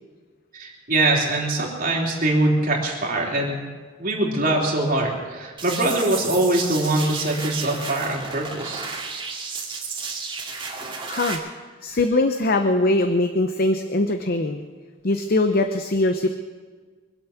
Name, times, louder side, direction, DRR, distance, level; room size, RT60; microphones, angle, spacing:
voice 1, 0.5-3.6 4.0-8.9, right 2 dB, 50° right, -2 dB, 3.3 m, -23 dB
sound 1, 5.6-11.3, right 4 dB, 25° right, 2.4 m, -33 dB
voice 2, 11.1-11.4 11.8-14.6 15.0-16.3, left 2 dB, 50° left, 7 dB, 0.8 m, -21 dB
24.0 x 8.2 x 7.1 m, 1.4 s
head